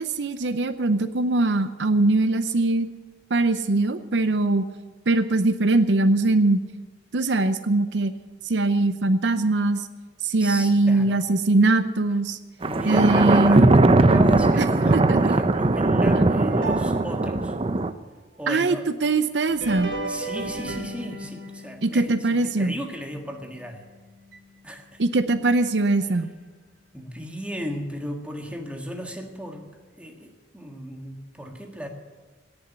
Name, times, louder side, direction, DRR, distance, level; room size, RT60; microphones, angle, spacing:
voice 1, 0.0-2.9 3.3-4.6 5.1-6.6 7.1-8.1 8.4-9.9 10.2-12.4 12.8-13.6 14.6-14.7 14.9-15.2 18.5-18.8 19.0-19.9 21.8-22.7 25.0-26.3, right 2 dB, 70° right, 11 dB, 0.7 m, -21 dB
voice 2, 10.4-11.2 12.6-17.5 18.4-18.9 20.1-23.9 24.6-25.0 26.9-31.9, equal, 5° right, 3 dB, 1.6 m, -35 dB
Thunder, 12.6-17.9, right 2 dB, 30° right, 0.6 m, -19 dB
sound 1, 16.5-17.6 19.5-23.9 24.3-24.4 25.3-25.4 26.1-26.2, right 2 dB, 85° right, 2.4 m, -35 dB
18.0 x 7.1 x 9.8 m, 1.3 s
head